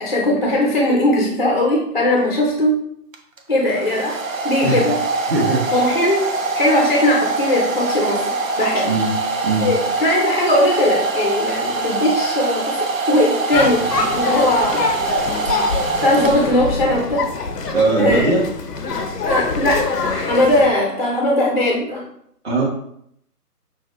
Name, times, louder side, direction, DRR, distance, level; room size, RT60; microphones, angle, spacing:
voice 1, 0.0-2.7 3.5-4.1 4.4-4.9 5.7-6.2 6.5-8.2 8.6-8.9 9.6-12.7 13.1-13.8 14.1-14.8 16.0-17.2 18.0-18.3 19.2-19.8 20.1-22.0, left 1 dB, 35° left, -2 dB, 0.5 m, -18 dB
Domestic sounds home sounds, 3.1-16.9, right 3 dB, 55° right, 0.7 m, -23 dB
voice 2, 5.3-5.9 8.8-9.2 9.4-9.7 17.7-18.5 22.4-22.6, right 2 dB, 40° right, -4 dB, 1.1 m, -19 dB
sound 1, 13.5-20.7, left 4 dB, 80° left, 0.7 m, -25 dB
5.9 x 2.2 x 2.9 m, 0.71 s
figure-of-eight pair, 145°, 47 cm